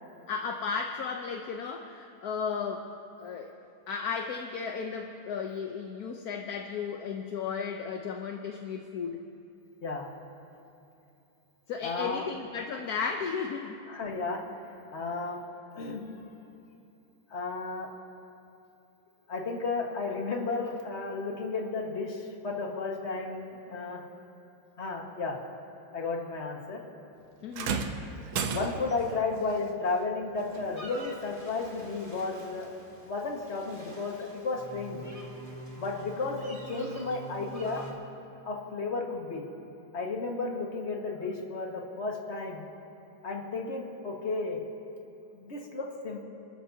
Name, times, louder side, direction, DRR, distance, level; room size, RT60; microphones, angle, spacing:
voice 1, 0.3-2.9 3.2-3.5 3.9-9.3 11.7-13.8 27.4-27.8, left 6 dB, 60° left, 3 dB, 1.0 m, -34 dB
voice 2, 11.8-12.2 13.9-14.4 14.9-15.4 15.7-16.0 17.3-17.9 19.3-24.0 24.8-25.4 25.9-26.8 28.5-32.7 33.0-35.1 35.8-37.8 38.4-39.5 39.9-42.6 43.2-44.6 45.3-46.2, left 3 dB, 35° left, 0 dB, 1.7 m, -33 dB
sound 1, 27.5-29.1 30.5-30.7 31.6-31.7, right 6 dB, 80° right, 1.7 m, -33 dB
sound 2, 30.4-37.9, right 1 dB, 25° right, 2.1 m, -46 dB
28.5 x 13.5 x 2.8 m, 2.8 s
omnidirectional pair, 2.2 m